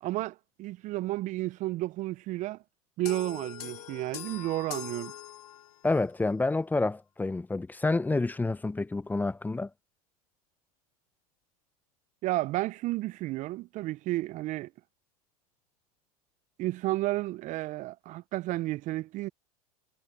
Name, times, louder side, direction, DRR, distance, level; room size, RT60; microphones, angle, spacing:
voice 1, 0.0-2.6 3.0-5.1 12.2-14.7 16.6-19.3, right 17 dB, 40° right, 0.9 m, -32 dB
sound 1, 3.0-5.9, left 10 dB, 75° left, 5.4 m, -42 dB
voice 2, 5.8-9.7, left 3 dB, 10° left, 1.1 m, -28 dB
hypercardioid pair, 90°, 20 cm